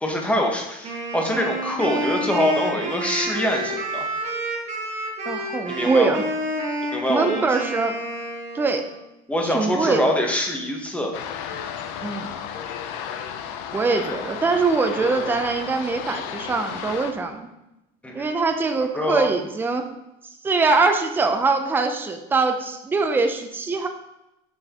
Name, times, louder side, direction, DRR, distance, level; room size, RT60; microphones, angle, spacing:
voice 1, 0.0-4.1 5.7-6.2 6.9-7.6 9.3-11.1 15.0-15.4 18.0-18.3 18.9-19.3, left 1 dB, 5° left, 1 dB, 0.8 m, -24 dB
Wind instrument woodwind instrument, 0.8-9.0, right 1 dB, 35° right, 1.5 m, -29 dB
voice 2, 5.3-6.2 7.1-8.0 8.5-8.9 9.4-10.0 12.0-12.3 13.7-17.5 18.1-19.9 20.4-23.9, right 4 dB, 10° right, 5 dB, 0.4 m, -22 dB
sound 1, 11.1-17.1, left 8 dB, 80° left, 0.6 m, -33 dB
6.2 x 5.4 x 2.9 m, 0.90 s
cardioid pair, 155°, 20 cm